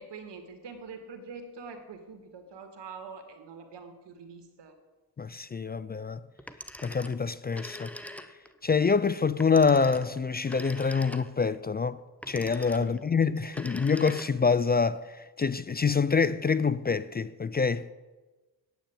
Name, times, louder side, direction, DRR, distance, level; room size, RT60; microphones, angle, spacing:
voice 1, 0.0-4.8 12.8-13.0, right 4 dB, 90° right, 1.9 m, -45 dB
voice 2, 5.2-6.2 6.8-7.9 8.6-12.0 12.3-17.9, left 5 dB, 25° left, 0.4 m, -26 dB
Telephone, 6.4-8.6 9.4-11.5 12.2-13.0 13.4-14.6, left 1 dB, 5° left, 0.7 m, -44 dB
9.2 x 8.8 x 8.5 m
cardioid pair, 95°, 41 cm